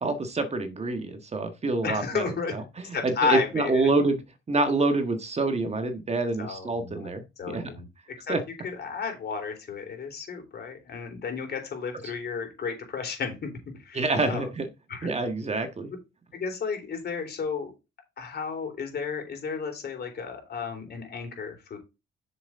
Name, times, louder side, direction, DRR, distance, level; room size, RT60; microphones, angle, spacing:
voice 1, 0.0-4.2 4.5-7.2 7.5-7.7 8.3-8.4 13.9-14.7 15.0-15.9, right 3 dB, 30° right, 7 dB, 1.6 m, -27 dB
voice 2, 1.8-2.5 2.9-3.8 6.4-7.1 7.4-7.8 8.2-8.4 8.6-13.5 13.9-14.5 14.9-15.1 16.3-17.7 18.2-21.8, left 5 dB, 55° left, 4 dB, 3.7 m, -32 dB
7.4 x 6.9 x 3.7 m, 0.25 s
cardioid pair, 90°, 20 cm